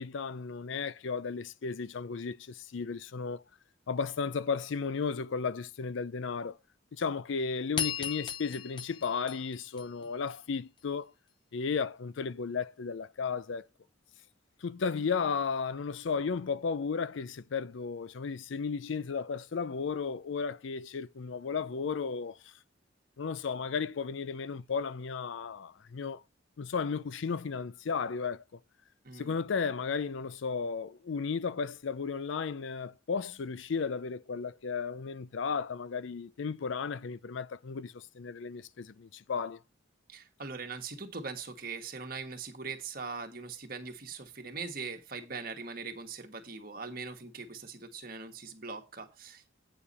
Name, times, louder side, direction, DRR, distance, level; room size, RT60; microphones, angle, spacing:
voice 1, 0.0-3.4 3.9-6.6 6.9-11.1 11.5-13.7 14.6-22.4 23.2-26.2 26.6-28.4 29.1-39.6, left 5 dB, 70° left, 0.5 m, -34 dB
sound 1, 7.8-10.3, left 8 dB, 25° left, 0.6 m, -37 dB
voice 2, 29.0-29.4 40.1-49.5, right 4 dB, 45° right, 1.4 m, -41 dB
9.0 x 6.8 x 4.2 m
head